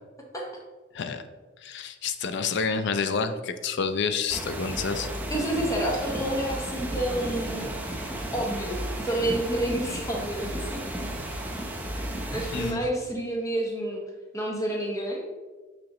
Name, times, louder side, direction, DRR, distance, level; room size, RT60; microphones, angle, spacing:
voice 1, 1.6-5.1 12.5-12.8, left 5 dB, 60° left, 10 dB, 0.4 m, -28 dB
sound 1, 4.3-12.7, right 1 dB, 10° right, 0.6 m, -33 dB
voice 2, 5.3-7.6 8.3-10.8 12.3-14.0 14.3-15.2, right 1 dB, 15° left, -1 dB, 0.9 m, -29 dB
6.3 x 4.9 x 3.0 m, 1.3 s
head